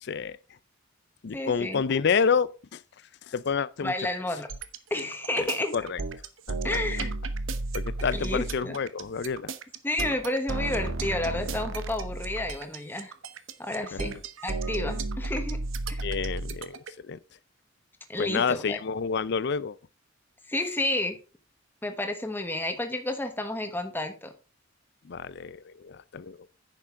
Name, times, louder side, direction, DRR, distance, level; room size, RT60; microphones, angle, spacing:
voice 1, 0.0-0.4 1.2-2.8 3.3-3.9 5.4-5.5 5.7-6.0 6.5-6.8 7.7-9.5 13.9-14.0 16.0-17.2 18.2-19.8 25.0-26.4, left 6 dB, 55° left, 0.5 m, -29 dB
voice 2, 1.3-1.8 3.8-4.5 4.9-5.7 6.6-7.1 8.1-8.8 9.8-13.1 13.6-15.6 15.9-16.1 18.1-18.8 20.5-21.2 21.8-24.3, left 1 dB, 10° left, 1.2 m, -31 dB
sound 1, 4.5-16.9, right 3 dB, 75° right, 0.9 m, -33 dB
9.9 x 6.7 x 3.7 m
head